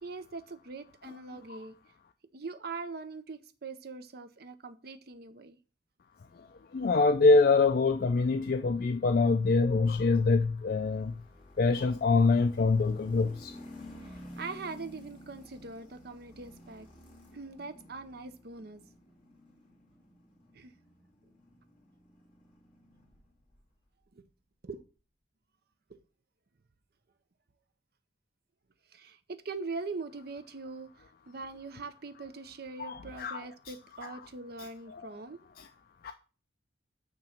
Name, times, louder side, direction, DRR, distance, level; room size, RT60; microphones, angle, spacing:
voice 1, 0.0-1.8 2.3-5.6 14.0-16.9 17.3-18.8 20.5-20.7 24.1-24.2 24.6-24.8 25.9-26.0 28.9-35.4, right 4 dB, 55° right, 0.6 m, -42 dB
voice 2, 6.7-11.1 11.6-13.5 32.8-33.7 34.0-34.2 34.6-35.0 35.6-35.7 36.0-36.1, left 3 dB, 55° left, 0.4 m, -25 dB
sound 1, 10.5-23.7, left 1 dB, 30° left, 2.3 m, -52 dB
8.7 x 3.0 x 5.8 m
head